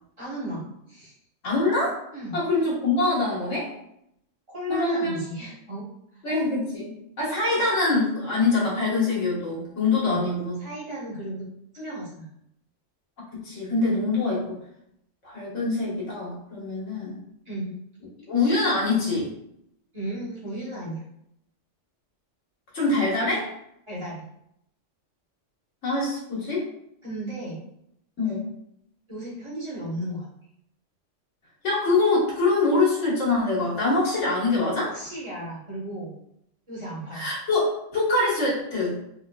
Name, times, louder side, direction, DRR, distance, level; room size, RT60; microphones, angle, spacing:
voice 1, 0.2-1.1 2.1-2.4 4.5-5.9 10.0-10.2 10.6-11.4 11.7-12.3 17.4-17.7 19.9-21.0 23.9-24.2 27.0-27.6 29.1-30.3 34.9-36.1 36.7-37.3, right 1 dB, 25° right, -7 dB, 1.1 m, -34 dB
voice 2, 1.4-2.0 2.3-3.7 4.7-5.2 6.2-10.6 13.3-14.6 15.2-17.2 18.3-19.3 22.7-23.5 25.8-26.7 28.2-28.4 31.6-35.0 37.1-39.0, left 3 dB, 85° left, -6 dB, 1.7 m, -24 dB
3.7 x 3.0 x 2.3 m, 0.76 s
omnidirectional pair, 1.2 m